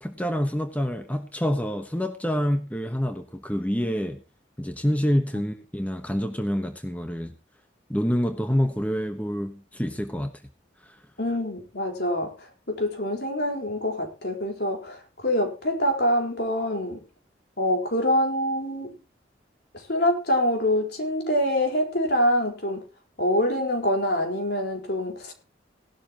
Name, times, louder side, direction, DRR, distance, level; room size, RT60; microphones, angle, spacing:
voice 1, 0.0-4.2 4.6-7.3 7.9-10.3 10.9-11.0, equal, 10° left, 1.2 m, -27 dB
voice 2, 11.2-17.0 17.6-19.0 19.7-22.8 23.2-25.3, equal, 60° left, 4.4 m, -25 dB
18.0 x 12.5 x 3.0 m
head